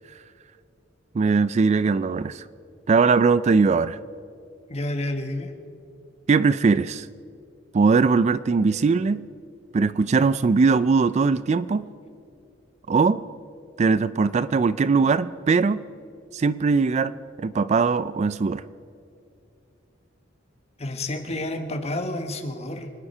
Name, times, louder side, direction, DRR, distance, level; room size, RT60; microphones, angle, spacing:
voice 1, 1.1-2.5 2.9-4.0 6.3-7.1 7.7-9.3 9.7-11.9 12.9-13.2 13.8-15.8 16.3-17.1 17.4-18.6, right 4 dB, 35° right, 16 dB, 0.3 m, -20 dB
voice 2, 4.7-5.5 20.8-22.9, left 1 dB, 35° left, 6 dB, 1.4 m, -30 dB
25.0 x 10.0 x 5.5 m, 2.4 s
head